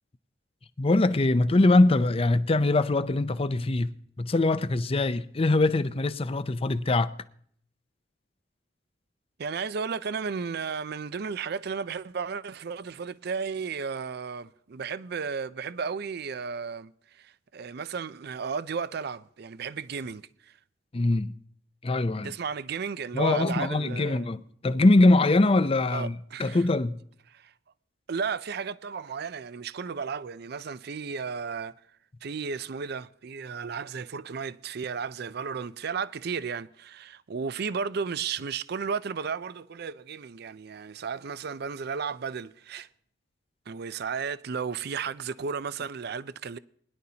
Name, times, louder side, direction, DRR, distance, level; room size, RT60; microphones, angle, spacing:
voice 1, 0.8-7.1 20.9-21.3 21.8-22.3 23.1-26.1 26.4-27.0, left 2 dB, 30° left, 0.5 m, -23 dB
voice 2, 9.4-20.6 22.2-24.4 25.9-26.7 27.3-27.5 28.1-31.8 32.2-42.9 43.7-46.6, right 5 dB, 60° right, 0.5 m, -34 dB
21.0 x 11.0 x 2.8 m
head